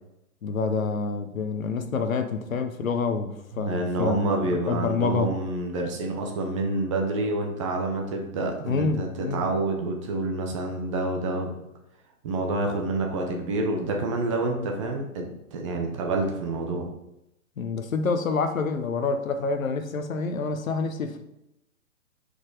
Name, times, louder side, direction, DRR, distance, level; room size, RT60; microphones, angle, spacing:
voice 1, 0.4-4.4 4.7-5.3 8.7-9.4 17.6-21.2, left 4 dB, 65° left, 8 dB, 0.9 m, -27 dB
voice 2, 3.5-11.5 12.2-16.9, right 2 dB, 20° right, 2 dB, 0.6 m, -28 dB
4.9 x 4.2 x 4.8 m, 0.86 s
figure-of-eight pair, 125°, 44 cm